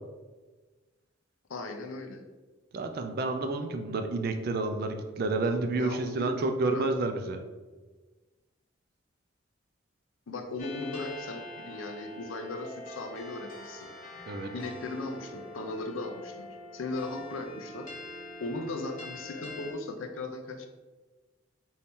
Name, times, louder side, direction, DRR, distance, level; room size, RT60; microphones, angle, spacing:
voice 1, 1.5-2.2 5.8-6.9 10.3-13.9 14.5-16.5 16.7-17.9 18.4-20.7, left 2 dB, 80° left, 5 dB, 0.5 m, -37 dB
voice 2, 2.7-7.4 14.3-14.5, right 2 dB, 50° right, 6 dB, 0.4 m, -30 dB
sound 1, 10.6-19.7, left 2 dB, 40° left, 0.7 m, -44 dB
4.2 x 2.7 x 3.5 m, 1.3 s
head